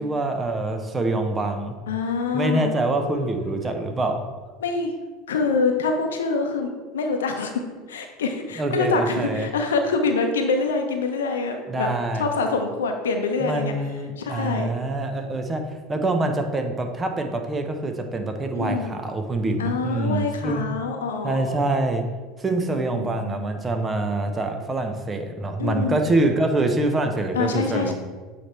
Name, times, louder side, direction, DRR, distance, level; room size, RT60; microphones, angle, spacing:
voice 1, 0.0-1.8 2.3-4.2 8.6-9.5 11.7-12.2 13.4-15.6 15.9-20.6 21.2-22.0 22.4-27.9, right 2 dB, 25° right, 5 dB, 0.9 m, -25 dB
voice 2, 1.9-2.7 3.0-3.5 4.6-4.9 5.3-7.5 7.9-11.9 12.1-13.7 14.2-14.7 18.5-19.0 19.6-21.6 22.9-23.5 25.6-26.0 27.3-27.9, left 4 dB, 80° left, 4 dB, 0.8 m, -25 dB
7.6 x 3.4 x 4.4 m, 1.3 s
hypercardioid pair, 75°, 0 cm